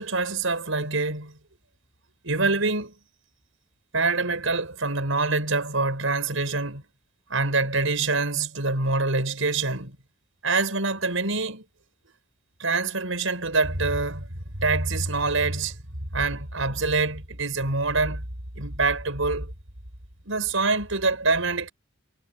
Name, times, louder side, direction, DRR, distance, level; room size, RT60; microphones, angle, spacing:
voice 1, 0.0-1.3 2.2-2.9 3.9-6.8 7.3-10.0 10.4-11.6 12.6-14.3 14.6-15.8 16.1-18.2 18.6-19.5 20.2-21.7, right 3 dB, 85° right, 5.6 m, -25 dB
head